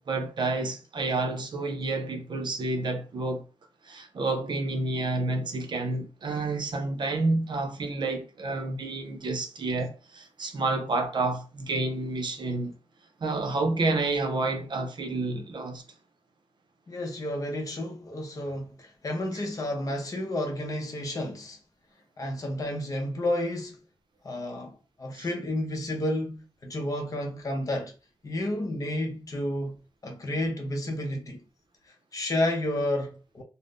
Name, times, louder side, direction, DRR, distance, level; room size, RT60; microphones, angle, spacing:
voice 1, 0.1-3.4 3.8-12.7 13.2-15.8 25.1-25.3, right 2 dB, 55° right, 0.6 m, -29 dB
voice 2, 16.9-21.6 22.2-23.8 24.2-24.7 25.0-27.9 28.2-29.8 30.0-31.4 32.1-33.4, left 1 dB, 40° left, 0.7 m, -31 dB
2.5 x 2.1 x 3.5 m
wide cardioid pair, 140°, 9 cm